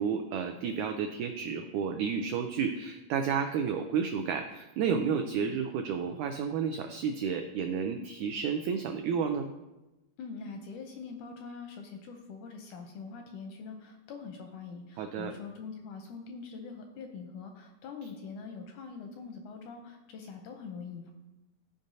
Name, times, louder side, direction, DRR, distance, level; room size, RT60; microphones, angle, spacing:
voice 1, 0.0-9.5 15.0-15.3, right 6 dB, 85° right, 5 dB, 1.7 m, -31 dB
voice 2, 10.2-21.1, left 5 dB, 80° left, 4 dB, 1.8 m, -43 dB
13.5 x 5.1 x 2.7 m, 1.0 s
omnidirectional pair, 4.0 m